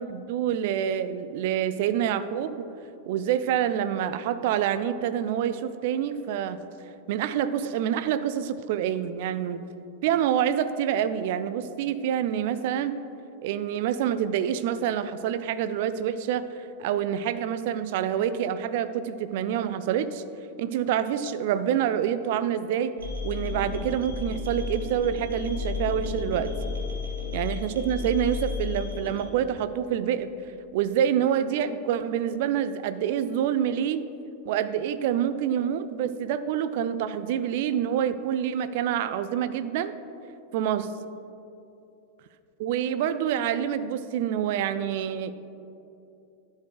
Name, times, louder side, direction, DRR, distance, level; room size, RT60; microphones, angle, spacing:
voice 1, 0.0-2.7 3.1-6.6 7.1-9.6 10.0-13.0 13.4-20.2 20.6-22.9 23.2-26.5 27.3-30.3 30.7-34.0 34.5-39.9 40.5-40.9 42.6-45.3, right 9 dB, 50° right, 13 dB, 0.4 m, -27 dB
sound 1, 23.0-29.3, left 4 dB, 70° right, 1.6 m, -32 dB
11.0 x 4.7 x 4.7 m, 2.7 s
figure-of-eight pair, 90°, 0 cm